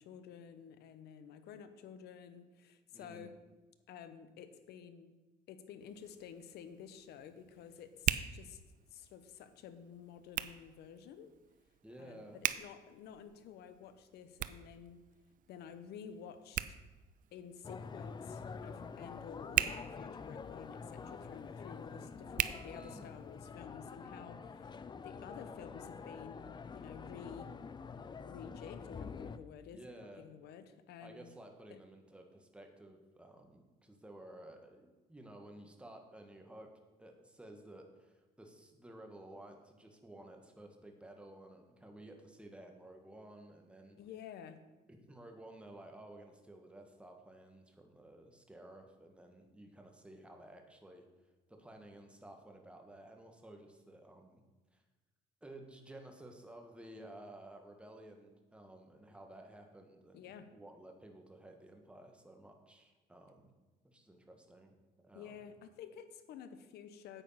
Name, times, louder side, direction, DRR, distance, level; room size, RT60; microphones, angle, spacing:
voice 1, 0.0-3.4 3.9-5.2 5.5-8.6 8.9-11.3 12.0-15.0 15.5-16.8 17.3-27.6 28.2-29.9 30.2-31.3 31.7-31.8 44.0-44.7 60.1-60.5 65.1-67.2, left 7 dB, 75° left, 11 dB, 1.0 m, -51 dB
voice 2, 2.9-3.3 11.8-12.4 22.7-23.1 29.7-30.3 31.0-36.7 37.0-44.0 44.9-51.0 51.5-54.4 54.7-54.8 55.4-63.5 63.8-64.7 65.0-65.4, right 1 dB, 5° right, 3 dB, 1.7 m, -54 dB
Hands, 5.8-23.4, right 11 dB, 50° right, 0.5 m, -42 dB
sound 1, 17.6-29.4, left 5 dB, 25° left, 0.5 m, -47 dB
9.2 x 8.4 x 5.7 m, 1.2 s
cardioid pair, 110°, 17 cm